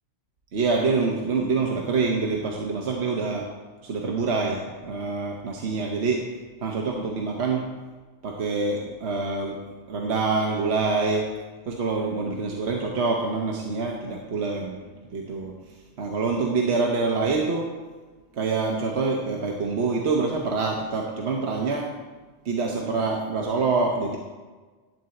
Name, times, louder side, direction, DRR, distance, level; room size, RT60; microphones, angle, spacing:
voice 1, 0.5-3.5 3.8-6.2 6.6-7.6 8.2-9.6 9.9-11.3 11.7-14.8 15.1-15.5 16.0-17.7 18.3-21.9 22.4-24.2, right 4 dB, 70° right, 0 dB, 1.2 m, -26 dB
10.5 x 4.2 x 7.6 m, 1.3 s
omnidirectional pair, 1.2 m